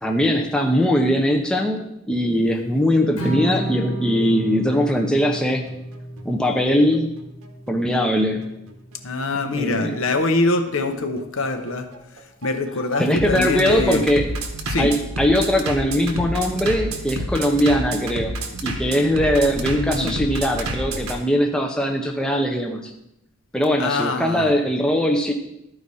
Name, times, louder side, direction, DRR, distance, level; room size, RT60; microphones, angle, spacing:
voice 1, 0.0-5.6 6.2-7.2 7.7-8.4 9.5-10.0 13.0-14.4 14.8-18.3 18.6-22.9 23.5-25.3, equal, 5° left, 1 dB, 0.6 m, -21 dB
Strum, 3.2-9.4, right 1 dB, 85° left, 1.7 m, -32 dB
Bass drum, 5.2-21.2, right 1 dB, 75° right, 1.1 m, -30 dB
voice 2, 9.0-11.9 12.4-14.0 14.7-14.9 19.5-20.2 23.8-24.5, left 3 dB, 65° left, 7 dB, 0.8 m, -24 dB
13.0 x 4.8 x 4.1 m, 0.82 s
head